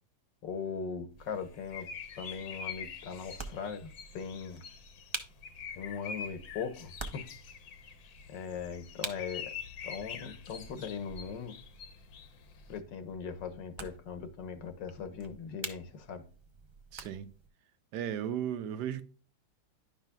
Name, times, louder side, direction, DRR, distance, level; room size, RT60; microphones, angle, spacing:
voice 1, 0.4-1.9 2.2-4.6 5.8-7.3 8.3-9.5 9.8-11.6 12.7-16.2, left 6 dB, 85° left, 1.7 m, -40 dB
sound 1, 1.1-17.5, right 3 dB, 40° right, 0.4 m, -48 dB
sound 2, 1.2-12.8, left 7 dB, 65° left, 1.2 m, -45 dB
voice 2, 16.9-17.3 17.9-19.0, right 9 dB, 75° right, 1.3 m, -35 dB
10.5 x 5.7 x 2.3 m
omnidirectional pair, 1.9 m